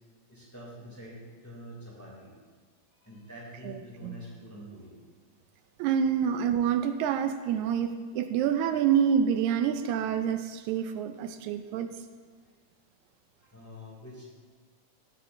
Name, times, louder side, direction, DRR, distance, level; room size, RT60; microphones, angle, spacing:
voice 1, 0.3-2.3 2.9-4.9 13.4-14.2, equal, 5° left, -5 dB, 2.1 m, -46 dB
voice 2, 3.6-4.2 5.8-11.9, right 8 dB, 85° right, 9 dB, 1.9 m, -27 dB
16.5 x 8.3 x 2.6 m, 1.5 s
omnidirectional pair, 3.4 m